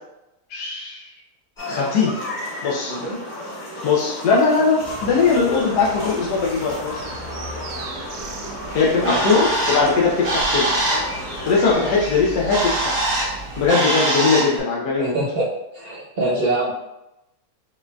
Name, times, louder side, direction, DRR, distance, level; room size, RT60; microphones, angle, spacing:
voice 1, 0.5-1.1 1.7-2.2 2.6-2.9 3.8-7.0 8.7-10.7 11.5-13.0 13.6-15.2, left 4 dB, 85° left, -4 dB, 1.2 m, -20 dB
sound 1, 1.6-11.7, left 1 dB, 35° left, 0.9 m, -33 dB
voice 2, 2.9-3.2 9.0-9.2 11.6-11.8 15.0-15.5 15.7-16.7, right 2 dB, 40° right, -6 dB, 1.0 m, -24 dB
sound 2, 4.8-13.7, right 3 dB, 80° right, 1.1 m, -38 dB
Bird, 8.7-14.6, right 1 dB, 65° right, 1.3 m, -24 dB
5.1 x 2.6 x 2.3 m, 0.90 s
omnidirectional pair, 1.7 m